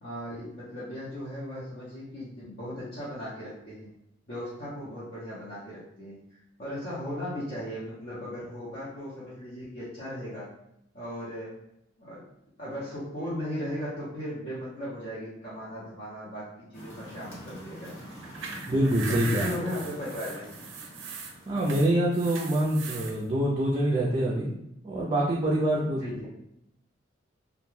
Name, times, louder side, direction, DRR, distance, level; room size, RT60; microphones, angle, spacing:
voice 1, 0.0-3.9 4.3-10.5 10.9-11.5 12.0-12.2 12.6-17.9 19.1-20.5 26.0-26.3, equal, 50° left, -10 dB, 0.7 m, -37 dB
sound 1, 16.7-21.7, equal, 90° left, 0.9 m, -45 dB
sound 2, 18.1-23.1, right 5 dB, 90° right, 0.4 m, -39 dB
voice 2, 18.7-19.5 21.5-24.5 24.8-26.3, right 1 dB, 25° right, -3 dB, 0.4 m, -25 dB
2.2 x 2.1 x 3.1 m, 0.80 s
head